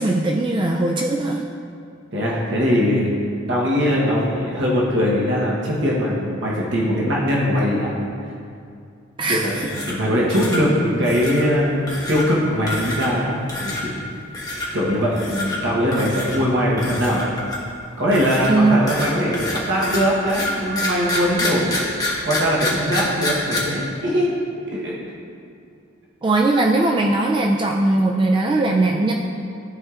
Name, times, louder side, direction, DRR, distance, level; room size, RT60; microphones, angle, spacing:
voice 1, 0.0-1.4 9.2-9.7 18.5-18.8 26.2-29.1, right 2 dB, 25° right, 1 dB, 0.3 m, -19 dB
voice 2, 2.1-3.1 3.5-7.9 9.2-13.9 14.7-17.3 18.0-21.8 22.2-24.3 24.7-24.9, equal, 65° right, -5 dB, 1.1 m, -21 dB
sound 1, 9.4-10.0 10.3-10.6 11.0-11.5 11.9-12.3 12.7-13.2 13.5-13.8 14.3-14.7 15.1-15.6 15.9-16.4 16.8-17.7 18.1-23.6, left 1 dB, 20° left, 1.1 m, -27 dB
12.5 x 4.4 x 2.4 m, 2.4 s
head